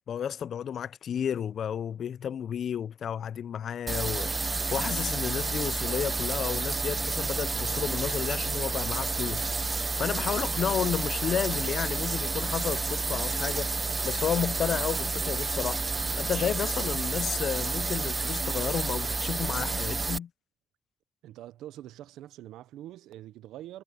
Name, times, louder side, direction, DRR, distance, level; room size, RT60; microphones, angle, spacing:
voice 1, 0.0-13.8 14.0-15.8 16.2-20.3, left 8 dB, 50° left, 0.4 m, -32 dB
sound 1, 3.9-20.2, right 3 dB, 20° right, 0.4 m, -30 dB
voice 2, 21.2-23.8, right 13 dB, 85° right, 0.6 m, -44 dB
cardioid pair, 140°, 0 cm